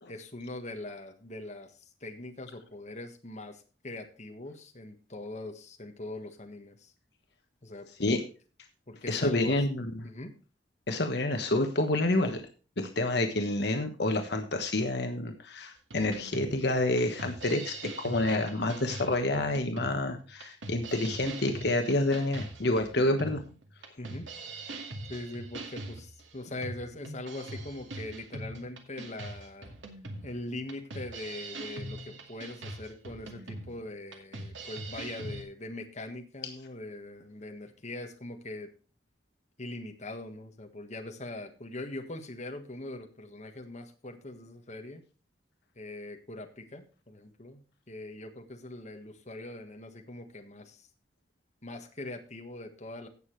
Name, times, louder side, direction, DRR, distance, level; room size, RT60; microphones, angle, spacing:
voice 1, 0.1-6.9 7.6-8.2 8.9-9.6 10.0-10.3 24.0-24.3 25.1-29.7 30.2-38.7 39.6-45.0 45.7-50.9 51.6-53.1, left 2 dB, 40° left, 4 dB, 1.6 m, -42 dB
voice 2, 9.1-9.9 10.9-12.4 12.8-23.4, left 2 dB, 60° left, 5 dB, 1.3 m, -28 dB
sound 1, 15.9-35.4, right 2 dB, 85° right, 2.2 m, -42 dB
17.0 x 6.7 x 3.3 m, 0.35 s
head